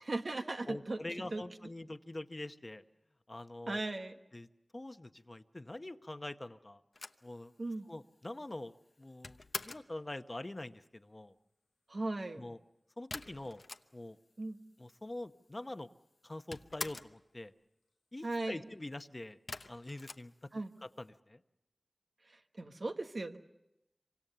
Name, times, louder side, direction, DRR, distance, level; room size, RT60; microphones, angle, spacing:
voice 1, 0.1-1.4 3.7-4.1 7.6-7.9 11.9-12.4 14.4-14.6 18.2-18.6 20.5-20.7 22.3-23.4, right 2 dB, 75° right, 5 dB, 1.3 m, -38 dB
voice 2, 0.7-2.8 3.3-3.8 4.3-4.5 4.7-6.8 7.2-7.5 7.9-11.3 12.4-12.6 13.0-13.6 13.9-14.2 14.8-15.9 16.2-17.5 18.1-19.4 19.7-20.3 20.8-21.4, left 1 dB, 45° left, 10 dB, 0.9 m, -44 dB
sound 1, 6.9-10.0 13.1-14.3 14.5-14.6 14.8-15.6 15.9-17.2 19.5-21.0, left 3 dB, 80° left, 0.8 m, -46 dB
26.5 x 25.0 x 6.8 m, 0.93 s
wide cardioid pair, 40°, 0 cm